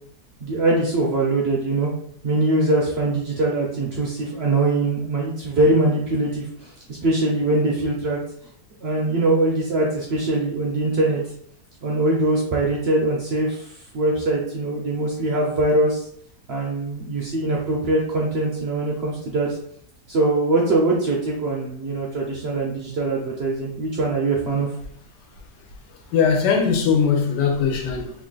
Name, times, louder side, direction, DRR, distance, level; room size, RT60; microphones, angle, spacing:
voice 1, 0.4-1.9 2.2-8.2 8.8-11.2 11.8-16.1 16.5-19.6 20.1-24.7, right 2 dB, 70° right, -2 dB, 0.6 m, -22 dB
voice 2, 26.1-28.1, left 6 dB, 90° left, 3 dB, 1.4 m, -20 dB
3.0 x 2.5 x 3.8 m, 0.66 s
omnidirectional pair, 1.8 m